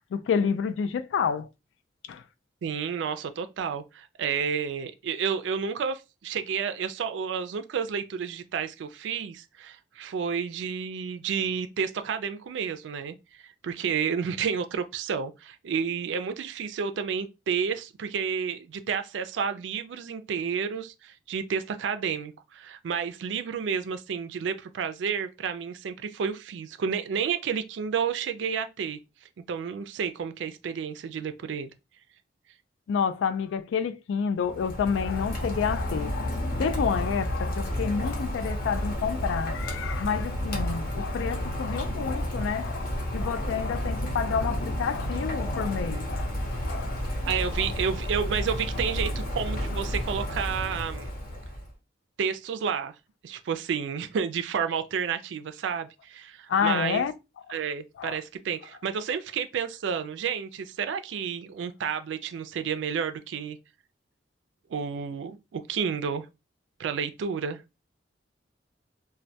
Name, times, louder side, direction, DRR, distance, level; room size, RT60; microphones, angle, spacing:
voice 1, 0.1-1.5 2.1-2.2 32.9-42.9 43.1-46.3 46.6-47.0 47.5-47.7 56.5-57.1 57.5-57.6 58.0-58.2, left 6 dB, 90° left, 0.3 m, -29 dB
voice 2, 2.6-13.2 13.4-29.0 29.5-31.7 47.2-51.1 52.2-52.9 53.2-57.0 57.5-63.6 64.7-66.3 66.8-67.6, right 6 dB, 80° right, 0.3 m, -31 dB
Rain, 34.4-51.7, equal, 50° left, 0.7 m, -31 dB
2.2 x 2.1 x 2.7 m
head